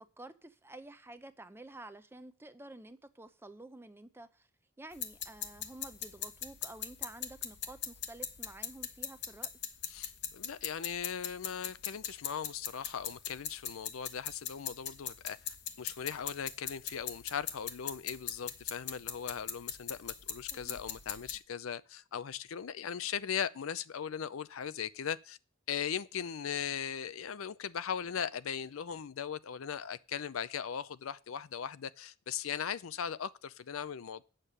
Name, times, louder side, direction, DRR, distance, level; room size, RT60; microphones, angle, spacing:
voice 1, 0.0-4.5 4.8-9.5 20.5-20.8, right 2 dB, 10° right, 0.6 m, -50 dB
sound 1, 4.9-21.4, left 9 dB, 55° left, 1.0 m, -41 dB
voice 2, 9.9-25.4 25.7-34.2, left 8 dB, 75° left, 0.5 m, -39 dB
9.0 x 6.6 x 6.6 m
head